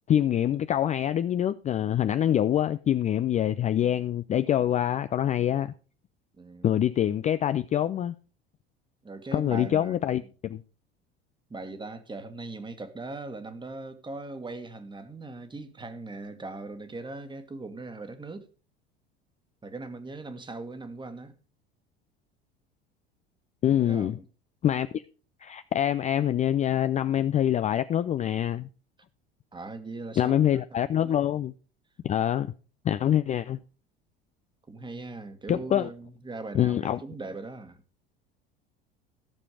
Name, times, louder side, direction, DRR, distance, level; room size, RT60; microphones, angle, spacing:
voice 1, 0.1-5.7 6.6-8.1 9.3-10.6 23.6-24.2 24.6-25.0 25.4-28.7 30.2-31.5 32.0-32.5 32.8-33.6 35.5-35.9 36.5-37.0, left 10 dB, 25° left, 0.4 m, -25 dB
voice 2, 6.4-6.7 9.0-10.1 11.5-18.5 19.6-21.3 23.8-24.2 29.5-30.6 30.9-31.3 34.7-37.8, right 3 dB, 15° right, 1.6 m, -40 dB
14.5 x 6.9 x 4.9 m
figure-of-eight pair, 70°, 30 cm